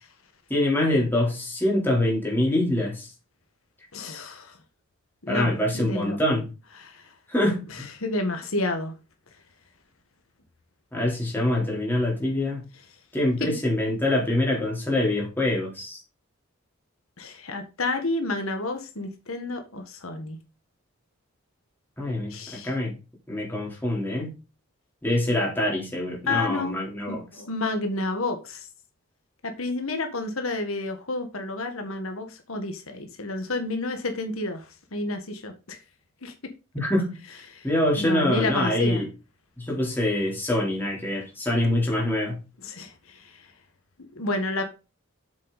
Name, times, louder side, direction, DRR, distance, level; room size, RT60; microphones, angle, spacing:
voice 1, 0.5-3.1 5.3-6.5 7.3-7.9 10.9-12.6 13.1-16.0 22.0-22.9 23.3-24.3 25.0-27.2 36.7-37.2 37.6-39.1 39.6-42.4, left 1 dB, 10° left, 3.7 m, -25 dB
voice 2, 3.9-4.5 5.3-6.2 6.8-7.0 8.0-8.9 13.4-13.5 17.2-20.4 22.0-22.7 26.3-26.7 27.1-28.6 29.4-34.6 34.9-35.8 36.2-36.3 37.5-37.6 38.0-39.0 42.6-42.9 44.2-44.6, left 2 dB, 75° left, 1.6 m, -30 dB
7.7 x 7.0 x 4.1 m
head